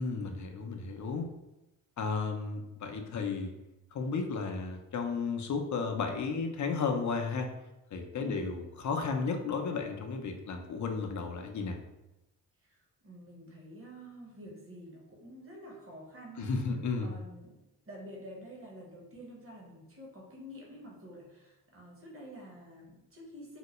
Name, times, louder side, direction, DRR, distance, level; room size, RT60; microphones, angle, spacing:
voice 1, 0.0-1.3 2.0-3.5 3.9-7.5 7.9-11.8 16.4-17.1, left 4 dB, 40° left, 4 dB, 0.7 m, -33 dB
voice 2, 13.0-16.5 17.0-17.6 17.8-23.6, equal, 30° right, -2 dB, 1.3 m, -49 dB
3.8 x 2.1 x 3.1 m, 0.95 s
hypercardioid pair, 45°, 45 cm